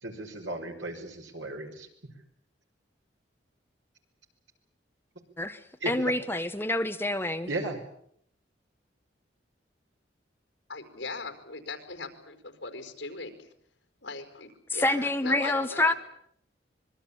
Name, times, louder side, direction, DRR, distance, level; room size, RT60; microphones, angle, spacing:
voice 1, 0.0-1.9 5.8-5.9 7.5-7.8, right 2 dB, 85° right, 5.9 m, -35 dB
voice 2, 5.9-7.5 14.7-15.9, left 2 dB, 10° left, 1.2 m, -27 dB
voice 3, 10.7-13.5 14.0-16.0, left 3 dB, 70° left, 4.7 m, -40 dB
25.5 x 22.5 x 8.7 m
head